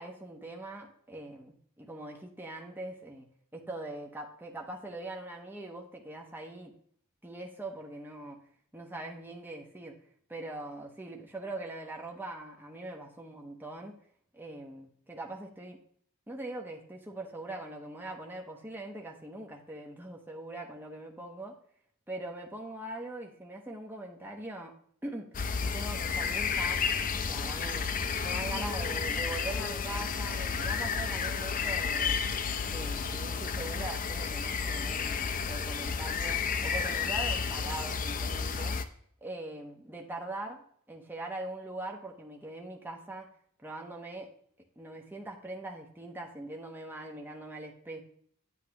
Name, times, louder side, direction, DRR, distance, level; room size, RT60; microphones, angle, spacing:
voice 1, 0.0-3.3 3.5-6.7 7.2-8.4 8.7-10.0 10.3-13.9 14.3-15.8 16.3-21.6 22.1-24.8 25.0-25.3 25.6-26.8 27.2-28.0 28.2-32.1 32.7-38.8 39.2-43.3 43.6-44.3 44.8-48.0, right 2 dB, 10° right, 0 dB, 0.9 m, -42 dB
sound 1, 25.3-38.8, left 6 dB, 40° left, 0.5 m, -32 dB
Wind instrument woodwind instrument, 29.8-34.0, right 2 dB, 55° right, 0.6 m, -51 dB
9.0 x 8.2 x 2.9 m, 0.63 s
head